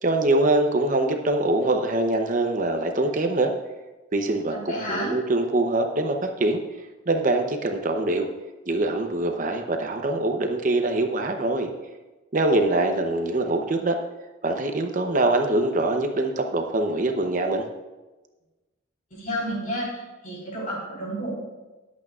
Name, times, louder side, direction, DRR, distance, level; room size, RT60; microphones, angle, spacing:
voice 1, 0.0-3.5 4.1-6.6 7.1-8.3 8.7-11.7 12.3-14.0 14.4-17.6, right 2 dB, 40° right, 4 dB, 0.8 m, -23 dB
voice 2, 4.5-5.1 19.1-19.9 20.2-21.3, equal, 45° left, -3 dB, 4.1 m, -30 dB
19.5 x 8.4 x 2.4 m, 1.2 s
head